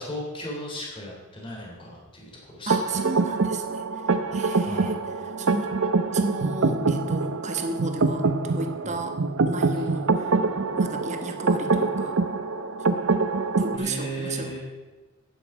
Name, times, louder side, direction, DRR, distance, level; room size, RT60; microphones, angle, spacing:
voice 1, 0.0-2.7 4.6-5.0 8.8-9.0 9.7-9.8 13.7-14.6, equal, 25° left, -2 dB, 3.2 m, -36 dB
voice 2, 2.7-4.0 4.3-5.7 6.1-9.2 9.5-10.2 10.8-12.2 13.6-14.6, right 2 dB, 35° right, 5 dB, 1.2 m, -33 dB
sound 1, 2.7-13.8, right 3 dB, 85° right, 0.8 m, -25 dB
12.5 x 9.4 x 4.9 m, 1.3 s
head